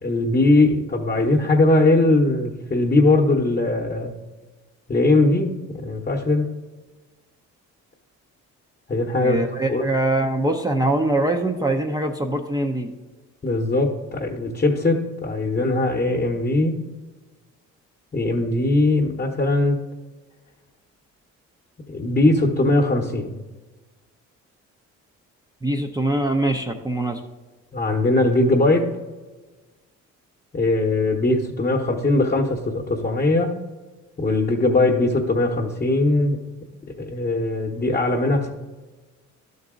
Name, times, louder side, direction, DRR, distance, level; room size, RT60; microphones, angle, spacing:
voice 1, 0.0-4.1 4.9-6.5 8.9-9.8 13.4-16.8 18.1-19.8 21.9-23.3 27.7-28.8 30.5-33.5 34.2-36.4 37.0-38.5, left 2 dB, 25° left, -2 dB, 1.0 m, -20 dB
voice 2, 9.2-12.9 25.6-27.2, right 1 dB, 15° right, 2 dB, 0.6 m, -23 dB
11.5 x 4.0 x 3.7 m, 1.2 s
cardioid pair, 80°, 31 cm